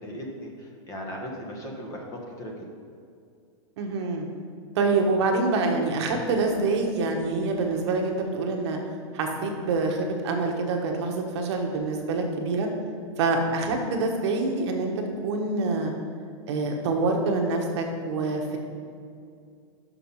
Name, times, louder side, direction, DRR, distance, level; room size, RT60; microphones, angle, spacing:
voice 1, 0.0-2.1 2.4-2.5, equal, 20° left, 0 dB, 1.0 m, -37 dB
voice 2, 3.8-4.3 4.7-8.8 9.1-12.7 13.2-15.9 16.5-18.6, right 3 dB, 60° right, 2 dB, 1.2 m, -26 dB
6.1 x 5.9 x 5.5 m, 2.3 s
supercardioid pair, 155°, 16 cm